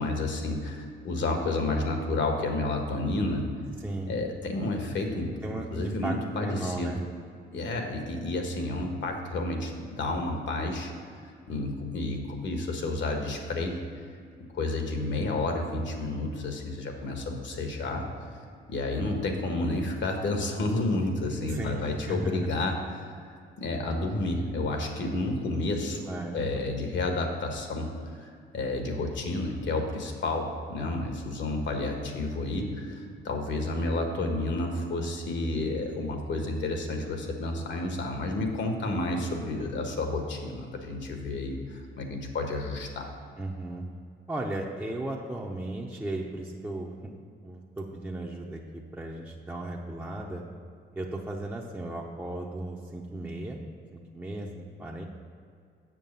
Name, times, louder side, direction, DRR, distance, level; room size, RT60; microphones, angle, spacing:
voice 1, 0.0-3.5 4.1-5.4 5.7-6.9 7.5-10.9 11.5-13.8 14.5-18.1 18.7-23.0 23.6-26.0 26.3-27.9 28.2-43.1, left 2 dB, 65° left, 3 dB, 1.4 m, -30 dB
voice 2, 3.8-4.1 5.4-7.0 21.5-22.5 26.1-26.6 43.4-43.9 44.3-47.1 47.4-50.4 50.9-53.6 53.9-55.0, right 1 dB, 10° right, -1 dB, 0.7 m, -36 dB
7.6 x 6.4 x 5.5 m, 2.3 s
cardioid pair, 90°, 20 cm